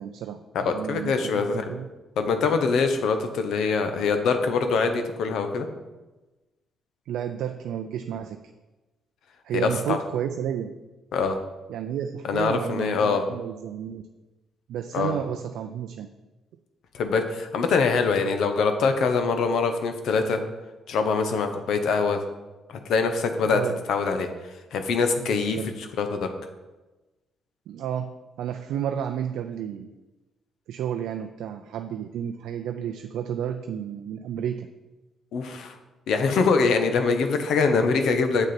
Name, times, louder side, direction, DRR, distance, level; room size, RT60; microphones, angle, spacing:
voice 1, 0.0-1.9 7.1-8.4 9.4-10.7 11.7-14.0 14.7-16.1 23.4-23.8 25.2-25.7 27.7-29.9 30.7-34.7, right 9 dB, 80° right, 6 dB, 0.4 m, -31 dB
voice 2, 0.6-1.6 2.2-5.7 9.5-10.0 11.1-11.4 12.3-13.2 14.9-15.1 16.9-20.4 20.9-22.2 22.7-23.6 23.9-24.3 24.7-25.6 26.0-26.2 35.3-35.8 36.1-38.5, left 4 dB, 75° left, 7 dB, 0.9 m, -23 dB
7.3 x 6.4 x 4.3 m, 1.1 s
supercardioid pair, 70°, 0 cm